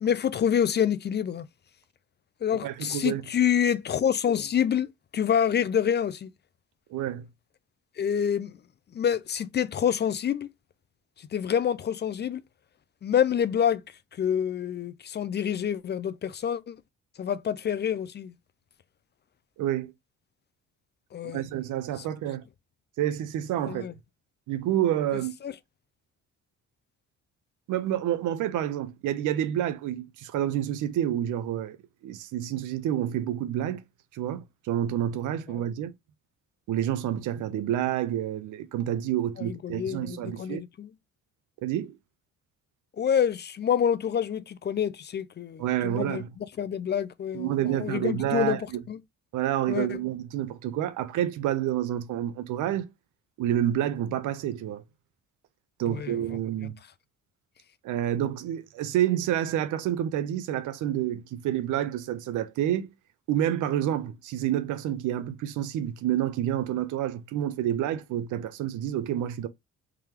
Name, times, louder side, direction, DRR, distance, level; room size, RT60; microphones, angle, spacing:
voice 1, 0.0-1.5 2.4-6.3 8.0-8.5 8.9-10.5 11.3-12.4 13.0-13.8 14.2-16.8 17.2-18.3 21.1-21.4 23.7-23.9 25.4-25.5 35.5-35.6 39.4-40.9 43.0-46.2 46.6-49.0 49.7-50.0 55.9-56.1, left 8 dB, 35° left, 0.4 m, -27 dB
voice 2, 2.6-3.2 6.9-7.3 19.6-19.9 21.3-22.4 23.0-23.8 24.5-25.3 27.7-31.8 32.0-33.8 34.1-35.9 36.7-40.6 41.6-42.0 45.6-46.3 47.3-48.8 49.3-52.9 53.4-54.8 55.8-56.8 57.8-62.9 63.3-69.5, right 11 dB, 85° right, 0.7 m, -28 dB
3.7 x 3.2 x 2.9 m
cardioid pair, 90°, 30 cm